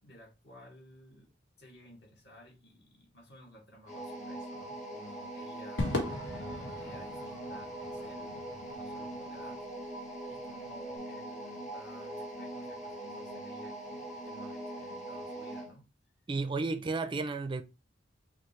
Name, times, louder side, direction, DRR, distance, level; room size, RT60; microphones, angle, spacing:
voice 1, 0.0-1.3 1.6-5.9 6.8-8.5 8.7-9.7 10.3-15.9 16.7-16.8, equal, 65° left, 1.9 m, -55 dB
sound 1, 3.9-15.7, right 1 dB, 40° left, 1.4 m, -42 dB
Crowd / Fireworks, 5.8-10.3, left 1 dB, 85° left, 1.6 m, -39 dB
voice 2, 16.3-17.6, right 3 dB, 25° right, 0.4 m, -32 dB
5.8 x 2.8 x 3.1 m
head